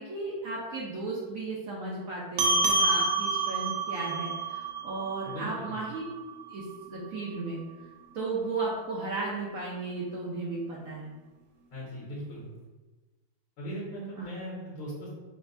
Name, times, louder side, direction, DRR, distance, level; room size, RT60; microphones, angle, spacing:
voice 1, 0.0-6.0 6.5-7.6 8.1-11.1 14.2-14.3, right 3 dB, 70° right, -4 dB, 0.8 m, -35 dB
sound 1, 2.4-7.2, right 3 dB, 90° right, 1.4 m, -29 dB
voice 2, 5.2-5.8 11.7-12.5 13.6-15.1, equal, 75° left, -6 dB, 2.0 m, -38 dB
6.3 x 2.2 x 2.6 m, 1.2 s
omnidirectional pair, 2.1 m